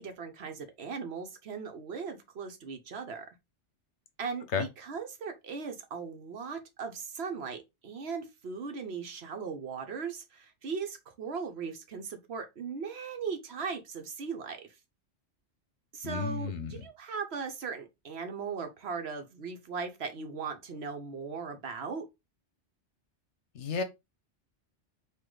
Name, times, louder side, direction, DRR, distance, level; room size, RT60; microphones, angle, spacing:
voice 1, 0.0-3.3 4.2-14.7 15.9-22.0, right 5 dB, 60° right, 1.1 m, -38 dB
voice 2, 16.0-16.8 23.5-23.8, left 5 dB, 70° left, 1.1 m, -32 dB
4.9 x 2.6 x 3.8 m
omnidirectional pair, 1.2 m